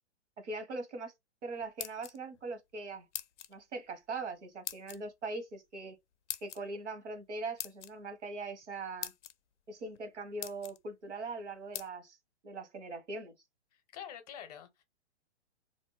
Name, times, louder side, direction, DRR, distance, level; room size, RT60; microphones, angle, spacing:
voice 1, 0.4-1.1 1.4-3.1 3.5-6.0 6.4-9.1 9.7-12.2 12.4-13.3, right 3 dB, 85° right, 1.1 m, -41 dB
sound 1, 1.6-2.4 3.1-3.5 4.6-5.0 6.3-6.6 7.6-7.9 8.6-8.7 9.0-9.3 9.9-10.0 10.4-10.8 11.7-11.9, left 10 dB, 85° left, 0.5 m, -41 dB
voice 2, 13.7-14.8, left 9 dB, 35° left, 0.6 m, -47 dB
2.5 x 2.0 x 3.0 m
hypercardioid pair, 130°, 34 cm